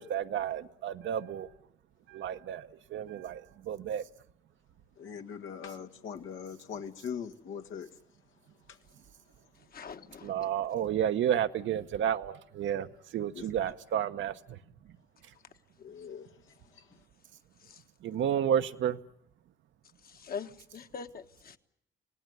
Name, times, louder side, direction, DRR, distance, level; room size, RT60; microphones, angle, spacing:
voice 1, 0.0-1.5 2.1-4.0 10.2-14.6 18.0-19.0, right 9 dB, 70° right, 1.0 m, -31 dB
voice 2, 5.0-7.9 13.3-13.7 15.8-16.3 16.7-16.9, left 7 dB, 80° left, 1.7 m, -41 dB
voice 3, 9.7-10.5 17.6-17.8 20.0-21.6, left 6 dB, 50° left, 1.4 m, -43 dB
26.5 x 18.0 x 9.6 m
cardioid pair, 90°, 20 cm